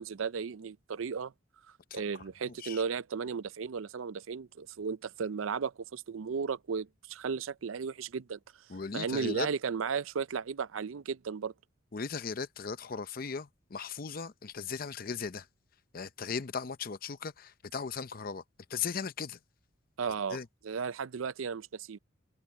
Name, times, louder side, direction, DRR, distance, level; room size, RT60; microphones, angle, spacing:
voice 1, 0.0-1.3 1.9-8.4 8.9-11.5 20.0-22.0, right 6 dB, 85° right, 0.5 m, -35 dB
voice 2, 1.9-2.8 8.7-9.5 11.9-15.5 15.9-18.4 18.7-19.4 20.3-20.5, left 5 dB, 45° left, 0.6 m, -37 dB
head